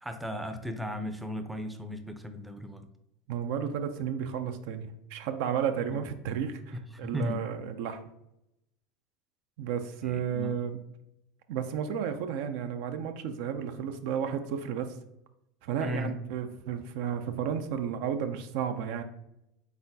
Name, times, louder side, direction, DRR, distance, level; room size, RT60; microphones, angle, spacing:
voice 1, 0.0-2.9 7.0-7.4 10.0-10.5 15.8-16.1, left 1 dB, 5° right, 7 dB, 0.5 m, -36 dB
voice 2, 3.3-8.0 9.6-10.8 11.5-15.0 15.6-19.0, right 8 dB, 70° right, 8 dB, 0.4 m, -32 dB
4.0 x 3.9 x 2.7 m, 0.82 s
supercardioid pair, 110°, 0 cm